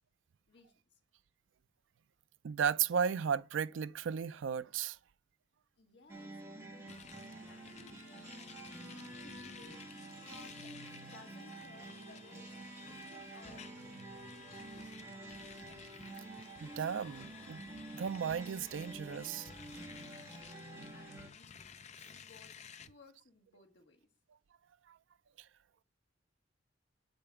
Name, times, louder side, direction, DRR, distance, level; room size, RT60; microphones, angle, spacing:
voice 1, 0.5-1.0 5.8-9.8 10.2-14.2 14.6-15.3 20.1-24.1, left 2 dB, 65° left, 1.6 m, -61 dB
voice 2, 2.4-5.0 16.6-17.6 17.9-19.5 24.9-25.0, right 7 dB, 80° right, 0.4 m, -35 dB
sound 1, 6.1-21.3, right 2 dB, 15° right, 2.0 m, -49 dB
sound 2, 6.9-22.9, left 7 dB, 35° left, 0.4 m, -54 dB
7.5 x 5.2 x 7.0 m
head